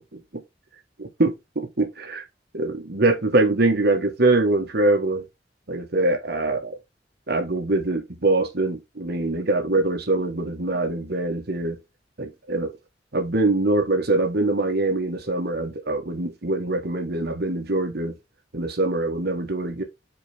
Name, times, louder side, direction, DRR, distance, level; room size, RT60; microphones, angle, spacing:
voice 1, 1.0-2.2 2.5-5.3 5.7-6.8 7.3-11.8 12.2-12.7 13.1-18.2 18.5-19.8, right 2 dB, 60° right, 1.4 m, -23 dB
8.2 x 4.6 x 3.5 m
head